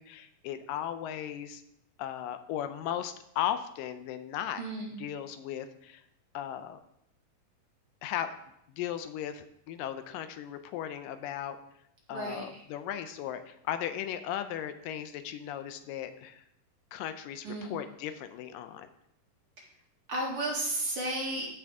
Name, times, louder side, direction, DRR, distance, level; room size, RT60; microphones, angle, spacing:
voice 1, 0.0-1.6 2.0-4.6 5.0-6.0 6.3-6.8 8.0-8.3 8.7-11.6 12.1-16.4 16.9-18.9, left 10 dB, 85° left, 10 dB, 2.3 m, -36 dB
voice 2, 4.6-5.0 12.1-12.5 17.4-17.7 20.1-21.5, right 1 dB, 45° right, -3 dB, 2.4 m, -33 dB
14.5 x 6.2 x 3.5 m, 0.76 s
omnidirectional pair, 3.9 m